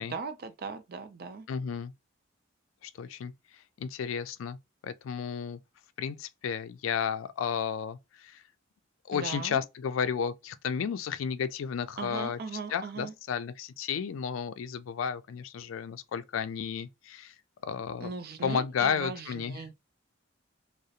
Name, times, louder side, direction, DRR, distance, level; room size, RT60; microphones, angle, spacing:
voice 1, 0.0-1.5 9.1-9.6 12.0-13.1 18.0-19.8, right 4 dB, 50° right, 0.5 m, -39 dB
voice 2, 1.5-1.9 2.8-4.6 4.8-5.6 6.0-8.4 9.0-12.4 12.7-17.4 17.6-18.1 18.4-19.6, left 7 dB, 85° left, 0.3 m, -33 dB
2.7 x 2.0 x 2.4 m
head